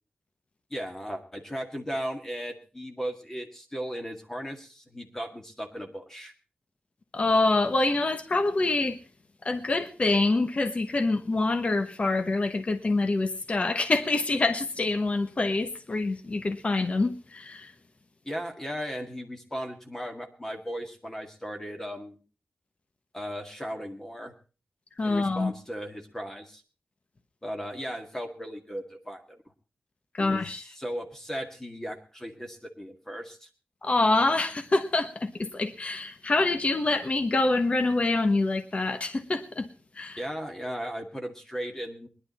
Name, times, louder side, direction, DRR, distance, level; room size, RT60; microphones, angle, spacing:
voice 1, 0.7-6.3 18.2-22.2 23.1-24.3 25.0-26.6 27.4-29.4 30.2-33.5 40.2-42.1, equal, 10° left, 2.0 m, -36 dB
voice 2, 7.1-9.0 9.4-17.7 25.0-25.5 30.2-30.6 33.8-39.7 40.0-40.2, left 2 dB, 35° left, 1.1 m, -26 dB
20.0 x 11.0 x 4.2 m
wide cardioid pair, 160°, 4 cm